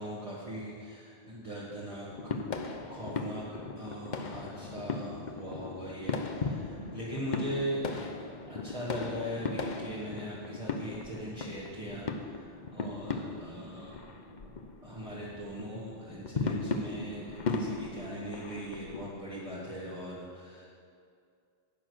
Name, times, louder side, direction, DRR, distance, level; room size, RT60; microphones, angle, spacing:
voice 1, 0.0-2.4 2.9-8.1 8.5-14.1 14.8-20.7, equal, 30° right, -8 dB, 1.7 m, -40 dB
sound 1, 2.1-19.1, left 4 dB, 45° left, 0.8 m, -37 dB
10.5 x 8.6 x 6.3 m, 2.3 s
omnidirectional pair, 1.2 m